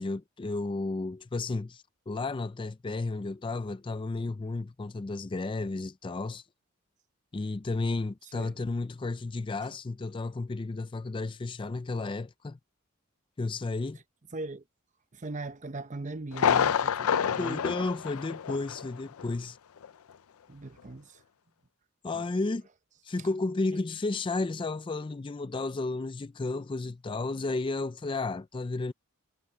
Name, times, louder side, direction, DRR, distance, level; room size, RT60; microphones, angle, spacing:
voice 1, 0.0-6.4 7.3-12.6 13.4-14.0 17.4-19.6 22.0-22.7 23.0-28.9, left 3 dB, 25° left, 0.4 m, -33 dB
voice 2, 14.3-14.6 15.1-17.6 20.5-21.2 22.1-22.2, right 2 dB, 35° right, 0.9 m, -39 dB
Thunder, 16.3-18.9 19.2-19.3 19.8-19.9, left 7 dB, 80° left, 0.5 m, -28 dB
head